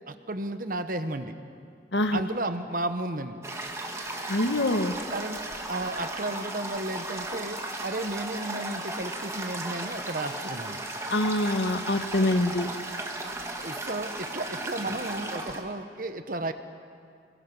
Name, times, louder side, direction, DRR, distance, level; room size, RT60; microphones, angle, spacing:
voice 1, 0.1-1.4 2.1-3.4 5.1-10.8 13.6-16.5, right 2 dB, 50° right, 9 dB, 1.1 m, -33 dB
voice 2, 1.9-2.2 4.3-5.0 11.1-12.7, left 1 dB, 75° left, 8 dB, 1.3 m, -25 dB
Toilet flush, 3.4-15.6, right 2 dB, 15° right, 1.6 m, -35 dB
28.0 x 21.5 x 6.2 m, 2.3 s
head